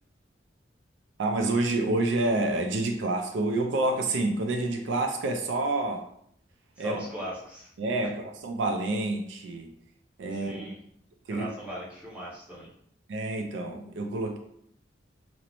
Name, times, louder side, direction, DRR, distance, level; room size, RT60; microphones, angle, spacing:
voice 1, 1.2-6.0 6.8-7.0 7.8-9.7 10.2-10.7 11.3-11.5 13.1-14.4, right 2 dB, 75° right, 4 dB, 0.4 m, -28 dB
voice 2, 6.8-7.7 10.3-10.8 11.3-12.7, equal, 5° right, -7 dB, 0.6 m, -39 dB
2.5 x 2.0 x 2.9 m, 0.68 s
head